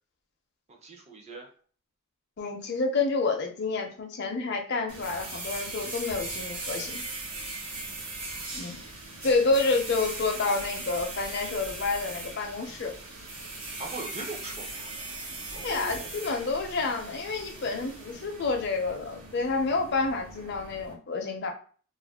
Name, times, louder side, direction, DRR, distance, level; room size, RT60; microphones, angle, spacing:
voice 1, 0.7-1.5 13.8-14.9 15.5-16.1, right 3 dB, 30° right, 1 dB, 0.5 m, -41 dB
voice 2, 2.4-7.0 8.5-8.8 9.2-13.0 15.6-21.5, left 3 dB, 50° left, 3 dB, 0.5 m, -29 dB
sound 1, 4.9-20.9, right 2 dB, 75° right, 1.0 m, -39 dB
2.4 x 2.1 x 3.4 m, 0.42 s
head